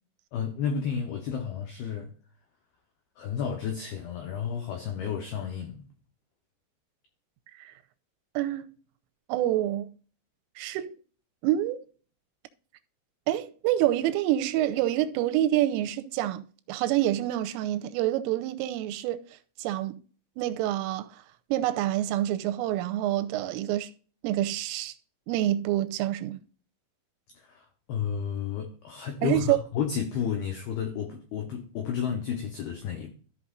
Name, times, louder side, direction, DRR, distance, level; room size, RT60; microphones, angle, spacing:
voice 1, 0.3-2.1 3.2-5.9 27.3-33.1, left 7 dB, 85° left, 2.2 m, -32 dB
voice 2, 9.3-9.9 10.6-10.9 11.4-11.8 13.3-16.4 16.7-19.2 19.6-20.0 20.4-21.1 21.5-23.9 24.2-24.9 25.3-26.4 29.2-29.6, right 13 dB, 85° right, 3.2 m, -27 dB
14.5 x 5.8 x 2.5 m
omnidirectional pair, 5.9 m